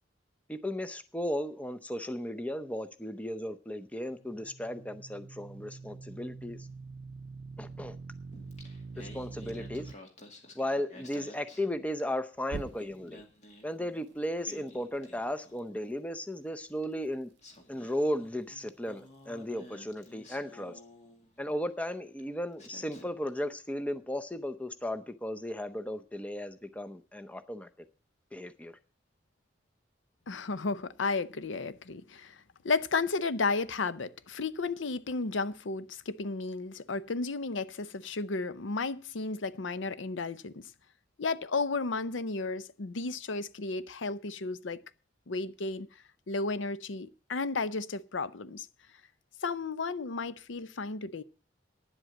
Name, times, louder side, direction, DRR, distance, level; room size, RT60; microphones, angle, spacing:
voice 1, 0.5-6.7 7.6-7.9 9.0-9.9 10.6-13.2 13.6-17.3 17.7-20.8 21.4-27.7 28.3-28.8, equal, 5° left, 0.6 m, -35 dB
sound 1, 4.1-9.9 12.5-13.2, right 4 dB, 65° right, 0.5 m, -44 dB
Singing, 8.3-12.3 12.6-15.8 16.8-16.9 17.4-21.6 22.2-22.3 22.6-23.4, left 1 dB, 35° left, 2.2 m, -53 dB
voice 2, 30.3-32.4 32.6-40.6 41.2-44.8 45.3-45.9 46.3-48.7 49.4-51.2, left 3 dB, 80° left, 0.7 m, -33 dB
10.0 x 7.8 x 7.6 m
head